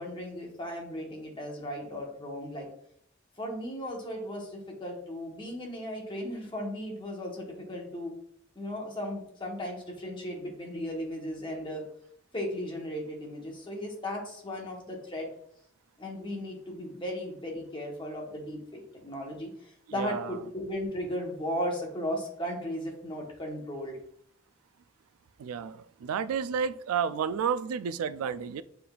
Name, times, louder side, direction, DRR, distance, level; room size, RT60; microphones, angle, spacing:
voice 1, 0.0-2.7 3.4-8.1 8.5-11.8 12.3-15.3 16.0-24.0, equal, 25° left, 0 dB, 1.0 m, -36 dB
voice 2, 20.0-20.4 25.4-28.6, right 7 dB, 85° right, 15 dB, 0.3 m, -31 dB
6.7 x 3.4 x 2.3 m, 0.67 s
head